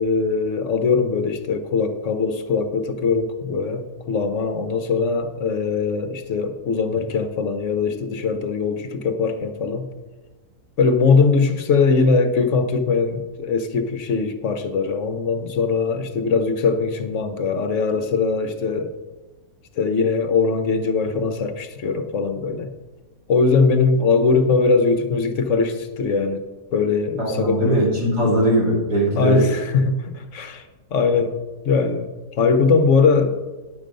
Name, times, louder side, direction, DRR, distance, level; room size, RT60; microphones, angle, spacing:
voice 1, 0.0-9.9 10.8-18.9 19.8-22.7 23.3-26.4 26.7-27.8 29.2-31.4 31.6-32.1 32.4-33.4, left 4 dB, 60° left, 8 dB, 1.0 m, -21 dB
voice 2, 27.2-29.5, right 1 dB, 85° right, -5 dB, 3.7 m, -20 dB
10.0 x 6.4 x 5.2 m, 1.2 s
omnidirectional pair, 1.7 m